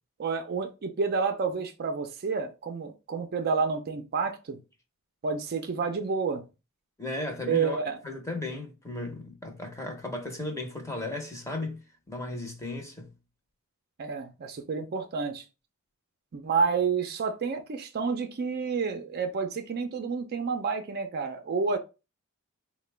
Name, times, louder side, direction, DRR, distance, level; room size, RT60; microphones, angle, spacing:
voice 1, 0.2-4.6 5.2-6.4 7.5-8.0 14.0-15.4 16.3-21.8, right 5 dB, 45° right, 0.4 m, -29 dB
voice 2, 7.0-11.8 12.1-13.1, left 2 dB, 15° left, 0.7 m, -35 dB
3.9 x 2.1 x 3.2 m
head